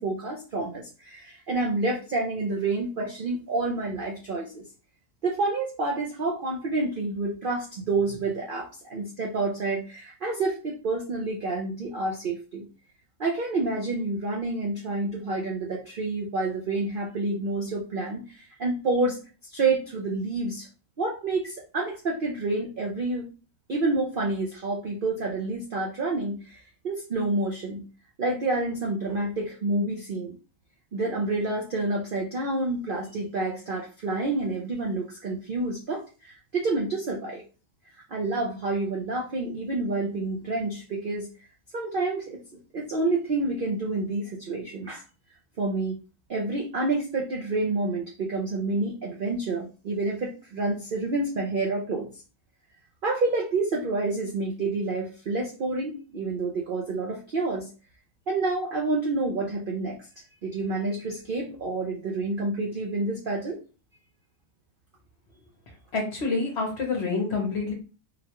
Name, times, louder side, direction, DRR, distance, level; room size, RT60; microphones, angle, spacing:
voice 1, 0.0-4.6 5.2-12.7 13.2-19.2 19.5-20.7 21.0-23.3 23.7-26.6 26.8-27.8 28.2-30.4 30.9-37.4 38.1-41.3 41.7-42.4 42.7-45.0 45.6-46.0 46.3-52.1 53.0-57.7 58.3-60.0 60.4-63.6, right 2 dB, 60° right, -2 dB, 0.5 m, -28 dB
voice 2, 65.9-67.7, left 4 dB, 50° left, 1 dB, 1.0 m, -27 dB
3.8 x 2.3 x 2.9 m, 0.34 s
omnidirectional pair, 1.6 m